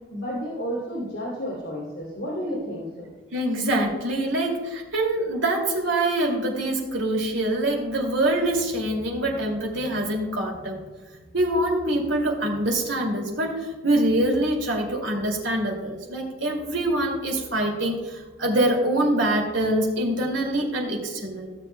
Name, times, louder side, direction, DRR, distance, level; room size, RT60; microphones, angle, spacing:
voice 1, 0.1-3.1, equal, 75° left, -7 dB, 2.9 m, -31 dB
voice 2, 3.3-10.8 11.3-21.6, right 1 dB, 70° right, 0 dB, 2.5 m, -25 dB
16.0 x 7.4 x 2.3 m, 1.3 s
head